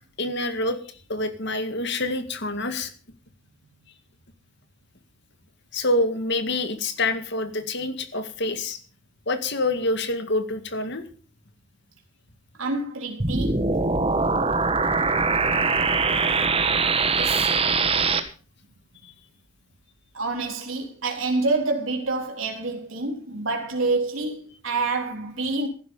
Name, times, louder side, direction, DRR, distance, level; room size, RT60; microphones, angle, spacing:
voice 1, 0.2-0.8 1.1-2.9 5.7-8.8 9.3-11.1, left 2 dB, 55° left, 2.0 m, -26 dB
voice 2, 12.6-13.7 17.2-17.5 20.1-25.7, right 3 dB, 70° right, 3.7 m, -27 dB
sound 1, 13.2-18.2, right 4 dB, 25° right, 1.4 m, -22 dB
15.0 x 12.0 x 5.5 m
head